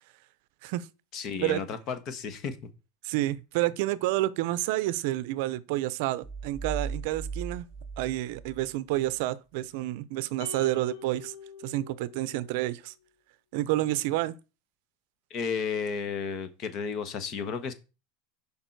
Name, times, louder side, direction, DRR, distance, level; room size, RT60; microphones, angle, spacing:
voice 1, 1.1-2.6 15.3-17.7, left 6 dB, 40° left, 1.1 m, -33 dB
voice 2, 3.0-7.6 8.0-11.3 11.6-12.9 13.5-14.3, right 16 dB, 65° right, 0.5 m, -29 dB
sound 1, 6.2-9.1, right 5 dB, 5° left, 1.6 m, -38 dB
sound 2, 10.4-12.9, left 8 dB, 80° left, 0.7 m, -46 dB
6.7 x 5.3 x 4.6 m
supercardioid pair, 145°, 0 cm